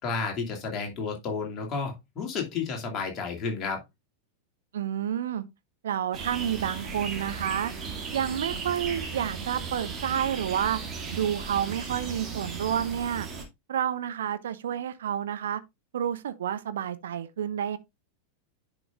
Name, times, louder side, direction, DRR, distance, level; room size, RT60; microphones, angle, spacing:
voice 1, 0.0-3.8, left 4 dB, 30° left, 2.4 m, -31 dB
voice 2, 4.7-5.4 5.8-7.7 8.1-10.8 11.1-13.3 13.7-15.6 15.9-17.8, right 9 dB, 60° right, 0.7 m, -29 dB
sound 1, 6.1-13.4, right 5 dB, 25° right, 2.1 m, -36 dB
10.5 x 5.1 x 2.5 m
figure-of-eight pair, 90°, 0 cm